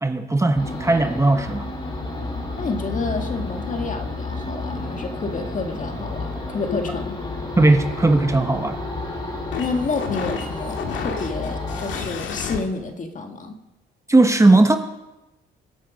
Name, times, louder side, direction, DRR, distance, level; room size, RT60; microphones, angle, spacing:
voice 1, 0.0-1.7 7.6-8.8 14.1-14.8, right 2 dB, 15° right, 6 dB, 1.2 m, -17 dB
sound 1, 0.5-12.0, left 2 dB, 25° left, 6.0 m, -31 dB
voice 2, 2.6-7.2 9.6-13.6, left 3 dB, 40° left, 4 dB, 1.9 m, -29 dB
sound 2, 6.7-12.6, left 6 dB, 75° left, 1.9 m, -32 dB
24.5 x 8.5 x 5.2 m, 1.0 s
cardioid pair, 90°, 20 cm